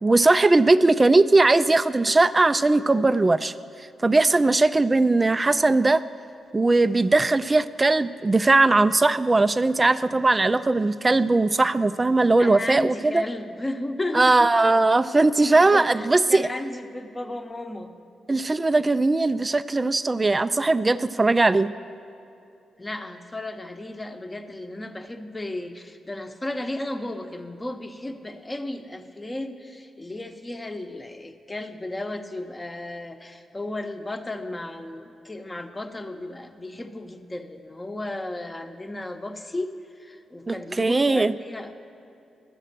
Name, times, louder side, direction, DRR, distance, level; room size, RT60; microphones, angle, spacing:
voice 1, 0.0-3.5 4.0-6.0 6.5-13.2 14.1-16.5 18.3-21.7 40.5-41.3, right 2 dB, 25° right, 14 dB, 0.3 m, -19 dB
voice 2, 12.4-14.5 15.5-17.9 22.8-41.9, left 1 dB, 20° left, 6 dB, 0.8 m, -34 dB
11.5 x 7.5 x 6.6 m, 2.7 s
supercardioid pair, 60°, 0 cm